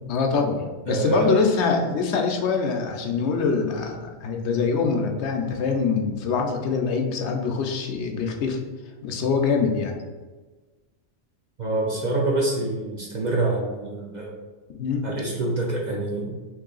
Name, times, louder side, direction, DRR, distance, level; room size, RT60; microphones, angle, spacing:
voice 1, 0.0-8.6 9.0-10.0 14.7-15.1, left 5 dB, 75° left, 3 dB, 0.9 m, -24 dB
voice 2, 0.9-1.3 11.6-14.3 15.0-16.3, right 2 dB, 55° right, -2 dB, 0.5 m, -26 dB
3.1 x 2.7 x 3.8 m, 1.3 s
omnidirectional pair, 1.2 m